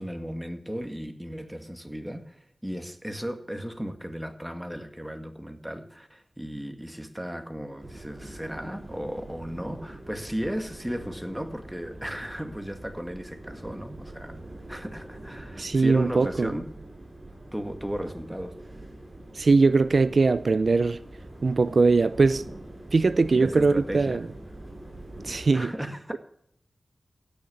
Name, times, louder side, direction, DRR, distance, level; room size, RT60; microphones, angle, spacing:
voice 1, 0.0-2.4 2.6-14.4 14.7-16.7 17.5-18.6 23.3-24.3 25.5-26.2, equal, 5° right, 1.8 m, -35 dB
sound 1, 7.8-25.5, right 1 dB, 40° right, 6.5 m, -43 dB
voice 2, 15.6-16.5 19.3-21.0 21.4-22.4 22.9-24.2 25.2-25.7, right 4 dB, 70° right, 0.4 m, -21 dB
16.0 x 6.6 x 9.3 m
wide cardioid pair, 65°, 0 cm